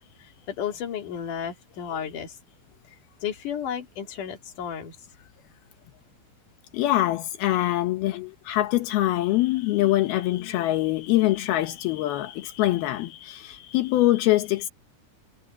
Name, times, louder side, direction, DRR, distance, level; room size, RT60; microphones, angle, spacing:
voice 1, 0.5-2.4 3.2-5.0 8.1-8.4 9.8-9.9 11.2-11.4, left 8 dB, 60° left, 3.8 m, -33 dB
voice 2, 6.7-14.7, left 15 dB, 85° left, 3.1 m, -24 dB
omnidirectional pair, 4.3 m